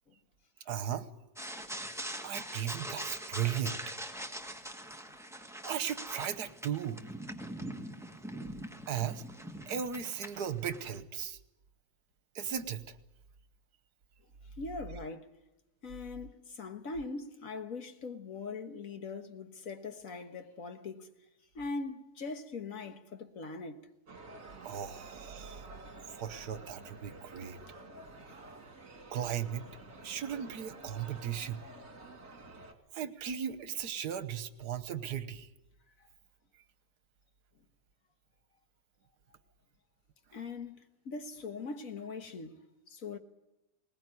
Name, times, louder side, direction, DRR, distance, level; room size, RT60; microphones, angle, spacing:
voice 1, 0.7-1.1 2.2-3.8 5.6-7.0 8.9-9.2 9.7-11.4 12.3-12.8 24.6-25.7 26.1-27.6 29.1-29.6 30.0-31.6 32.9-35.5, right 9 dB, 75° right, 1.6 m, -36 dB
sound 1, 1.4-11.0, right 1 dB, ahead, 1.4 m, -43 dB
voice 2, 14.6-15.3 15.8-21.1 21.6-23.8 27.4-27.5 28.3-28.4 36.0-36.1 40.3-43.2, left 3 dB, 55° left, 1.8 m, -41 dB
sound 2, 24.1-32.7, right 2 dB, 55° right, 2.6 m, -50 dB
20.5 x 20.0 x 9.7 m
omnidirectional pair, 1.7 m